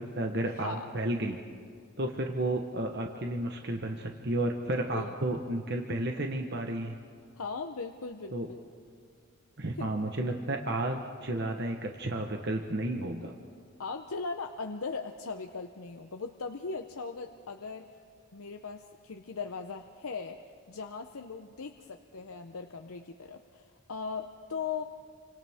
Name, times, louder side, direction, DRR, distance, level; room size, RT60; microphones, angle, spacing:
voice 1, 0.0-1.4 2.0-6.9 8.3-8.5 9.6-13.3, right 1 dB, 50° right, 3 dB, 1.1 m, -32 dB
voice 2, 4.9-5.5 7.4-8.6 9.8-9.9 13.8-17.9 18.3-20.4 20.7-24.8, left 4 dB, 75° left, 5 dB, 0.8 m, -39 dB
29.5 x 25.5 x 3.6 m, 2.1 s
head